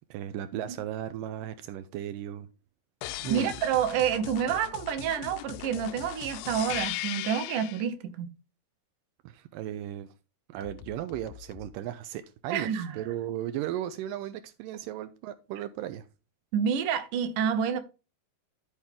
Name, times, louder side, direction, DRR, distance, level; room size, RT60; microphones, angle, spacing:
voice 1, 0.1-2.5 3.2-3.5 9.2-10.1 10.5-16.1, right 12 dB, 85° right, 2.0 m, -36 dB
sound 1, 3.0-7.9 10.6-11.7, left 15 dB, 80° left, 2.2 m, -39 dB
voice 2, 3.3-8.3 12.5-13.0 16.5-17.8, right 8 dB, 70° right, 2.2 m, -28 dB
13.0 x 4.4 x 3.6 m
omnidirectional pair, 4.4 m